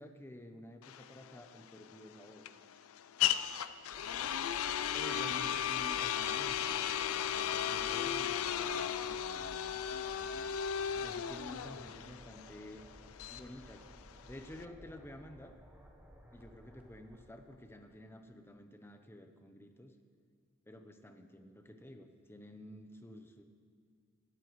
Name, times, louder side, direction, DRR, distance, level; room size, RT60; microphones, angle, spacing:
voice 1, 0.0-2.5 4.9-10.5 10.9-12.8 13.3-13.8 14.3-15.5 16.3-19.9 20.7-23.4, left 1 dB, 10° left, 6 dB, 0.7 m, -51 dB
sound 1, 0.8-14.6, left 9 dB, 70° left, 0.4 m, -35 dB
sound 2, 3.9-18.2, equal, 10° right, 1.0 m, -57 dB
18.5 x 13.0 x 3.1 m, 2.2 s
head